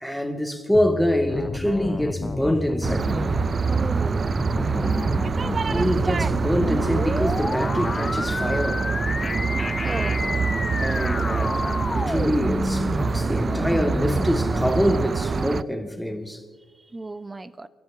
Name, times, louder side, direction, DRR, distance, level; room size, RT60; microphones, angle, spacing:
voice 1, 0.0-3.1 5.7-8.9 10.8-16.4, equal, ahead, 1.9 m, -25 dB
sound 1, 0.7-15.1, left 3 dB, 25° left, 0.8 m, -30 dB
sound 2, 2.8-15.6, right 5 dB, 40° right, 0.3 m, -25 dB
voice 2, 3.7-4.3 4.8-5.1 9.8-10.2 16.8-17.7, right 2 dB, 25° right, 0.9 m, -35 dB
29.5 x 12.0 x 2.7 m
hypercardioid pair, 50°, 0 cm